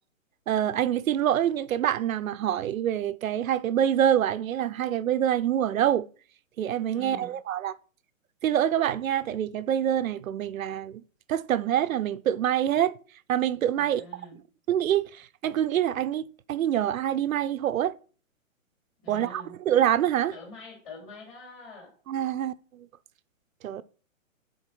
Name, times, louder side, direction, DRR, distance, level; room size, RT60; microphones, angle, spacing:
voice 1, 0.5-6.1 6.6-7.7 8.4-11.0 11.3-13.0 13.3-14.1 14.7-18.0 19.1-20.3 22.1-22.9 23.6-23.8, right 10 dB, 80° right, 0.6 m, -26 dB
voice 2, 6.9-7.3 13.7-14.4 19.0-19.6 20.3-21.9, left 1 dB, 25° left, 3.0 m, -45 dB
10.0 x 4.2 x 3.0 m
hypercardioid pair, 160°, 40 cm